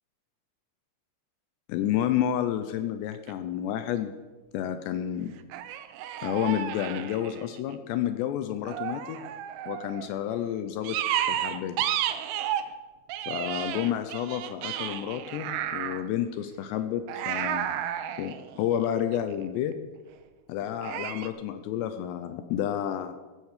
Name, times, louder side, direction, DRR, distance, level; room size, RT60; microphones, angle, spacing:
voice 1, 1.7-4.1 4.5-5.3 6.2-9.2 9.7-11.0 11.3-11.8 13.2-17.9 18.2-19.8 20.5-23.2, left 10 dB, 80° left, 9 dB, 2.6 m, -30 dB
sound 1, 3.1-3.3 5.5-7.7 8.7-10.1 10.8-12.7 13.1-16.1 17.1-19.3 20.8-21.3, right 11 dB, 85° right, 2.3 m, -32 dB
16.0 x 9.8 x 6.6 m, 1.2 s
omnidirectional pair, 5.4 m